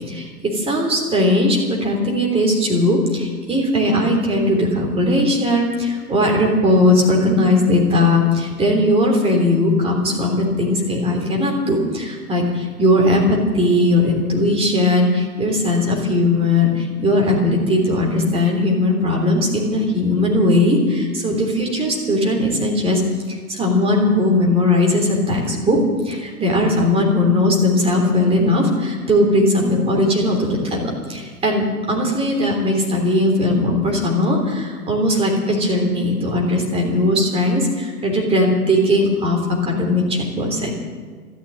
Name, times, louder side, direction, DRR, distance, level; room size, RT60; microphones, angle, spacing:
voice 1, 0.1-23.0 23.3-25.8 26.0-40.7, left 1 dB, 15° right, 0 dB, 3.4 m, -18 dB
13.5 x 13.0 x 7.9 m, 1.5 s
hypercardioid pair, 125°, 45 cm